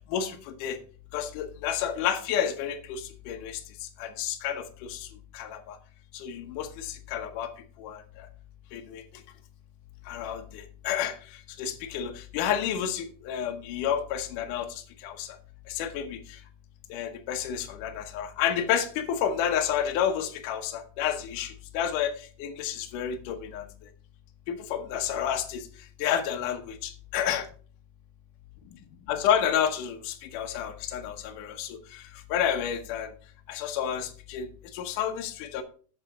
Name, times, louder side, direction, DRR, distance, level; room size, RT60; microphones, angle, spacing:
voice 1, 0.1-0.8 1.1-3.6 4.0-5.1 5.3-5.8 6.1-7.5 7.8-8.3 8.7-9.0 10.1-11.1 11.6-15.4 15.7-16.2 16.9-22.1 22.4-23.7 24.5-25.6 26.0-27.5 29.1-32.0 32.3-33.1 33.5-34.5 34.7-35.6, left 9 dB, 80° left, 5 dB, 1.8 m, -30 dB
8.0 x 7.1 x 5.3 m, 0.41 s
omnidirectional pair, 5.1 m